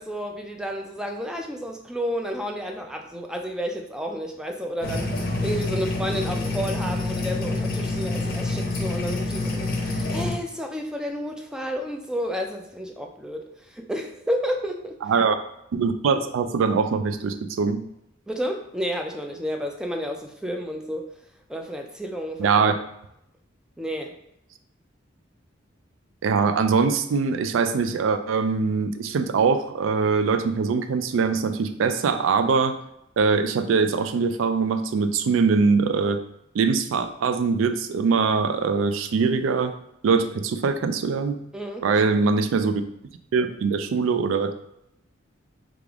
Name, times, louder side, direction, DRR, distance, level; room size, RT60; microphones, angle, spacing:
voice 1, 0.0-5.1 5.4-15.0 18.3-21.1 21.5-22.7 23.8-24.2 41.5-42.3, equal, 5° right, 3 dB, 0.3 m, -31 dB
sound 1, 4.8-10.3, left 2 dB, 50° left, 0.6 m, -27 dB
voice 2, 15.7-17.8 22.4-22.7 26.2-32.8 33.2-36.2 36.5-39.7 40.0-41.4 41.8-42.8 43.3-44.5, right 5 dB, 90° right, 9 dB, 0.3 m, -22 dB
3.3 x 2.4 x 3.5 m, 0.78 s
head